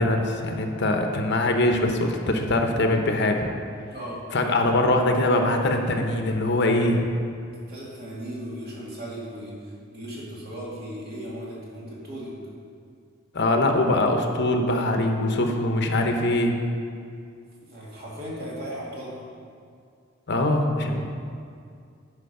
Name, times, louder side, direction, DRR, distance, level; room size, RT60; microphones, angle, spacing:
voice 1, 0.0-3.5 4.3-7.0 13.3-16.5 20.3-21.1, left 1 dB, 60° left, 4 dB, 0.9 m, -22 dB
voice 2, 3.9-4.2 7.7-12.3 17.6-19.2, equal, 55° right, -6 dB, 2.4 m, -37 dB
10.0 x 5.2 x 5.4 m, 2.3 s
head